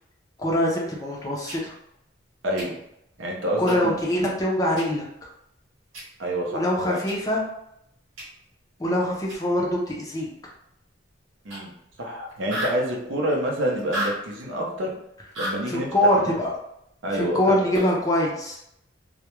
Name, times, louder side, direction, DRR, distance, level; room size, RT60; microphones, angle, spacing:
voice 1, 0.4-1.7 3.6-5.1 6.5-7.4 8.8-10.3 15.7-16.5 17.1-18.6, left 1 dB, 20° left, -2 dB, 0.5 m, -23 dB
sound 1, 1.5-1.6 2.6-2.7 3.7-3.8 4.8-4.9 5.9-6.0 7.1-7.2 8.2-8.3 9.3-9.4 11.5-11.6 11.9-12.0 12.3-12.8 13.8-14.2 15.3-15.6 17.7-18.0, equal, 90° right, 1.2 m, -31 dB
voice 2, 3.2-4.0 6.2-7.0 11.4-11.7 12.0-14.9 15.4-16.3 17.0-17.6, right 1 dB, 70° right, -1 dB, 0.6 m, -28 dB
2.3 x 2.1 x 3.0 m, 0.77 s
head